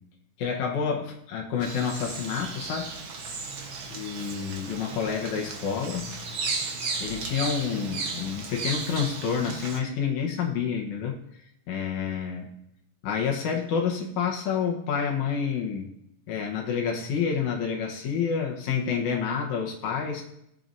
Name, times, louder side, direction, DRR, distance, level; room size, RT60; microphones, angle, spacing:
voice 1, 0.4-2.9 3.9-6.1 7.0-11.2 11.7-12.5 13.0-15.9 16.3-20.2, left 6 dB, 85° left, -1 dB, 2.5 m, -28 dB
Bird vocalization bird call bird song, 1.6-9.8, right 4 dB, 55° right, 1.7 m, -35 dB
18.0 x 7.5 x 2.7 m, 0.79 s
omnidirectional pair, 3.3 m